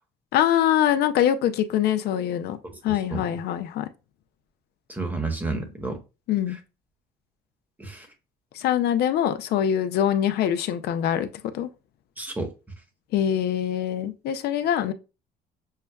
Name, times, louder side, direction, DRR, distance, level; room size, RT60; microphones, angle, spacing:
voice 1, 0.3-2.6 2.8-3.9 6.3-6.6 8.5-11.3 11.5-11.7 13.1-14.9, left 10 dB, 70° left, 0.5 m, -23 dB
voice 2, 2.9-3.2 4.9-6.0 7.8-8.1 12.2-12.5, right 3 dB, 10° right, 1.1 m, -30 dB
6.5 x 2.2 x 2.3 m
cardioid pair, 110°, 17 cm